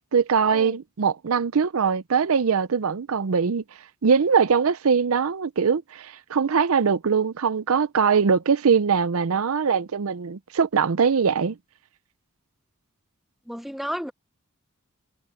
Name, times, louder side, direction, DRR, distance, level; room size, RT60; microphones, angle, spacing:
voice 1, 0.1-3.6 4.0-11.6, right 6 dB, 70° right, 0.6 m, -22 dB
voice 2, 13.5-14.1, equal, ahead, 0.7 m, -32 dB
head